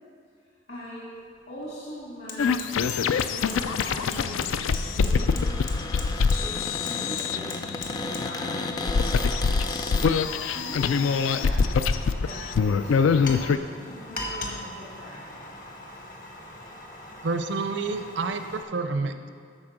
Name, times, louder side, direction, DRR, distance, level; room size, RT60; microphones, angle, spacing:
voice 1, 0.7-1.1 1.5-2.6 3.2-5.4 6.4-9.4 10.0-10.3 10.5-15.5, equal, 60° left, -7 dB, 2.0 m, -42 dB
Fire, 1.2-1.3 1.6-18.6, left 2 dB, 45° left, 1.0 m, -41 dB
sound 1, 2.4-13.6, left 5 dB, 90° left, 0.4 m, -25 dB
Cupboard open or close, 3.4-10.1, left 2 dB, 20° left, 0.4 m, -34 dB
voice 2, 17.2-19.3, right 3 dB, 65° right, 8 dB, 0.5 m, -29 dB
12.5 x 4.3 x 6.0 m, 2.2 s
head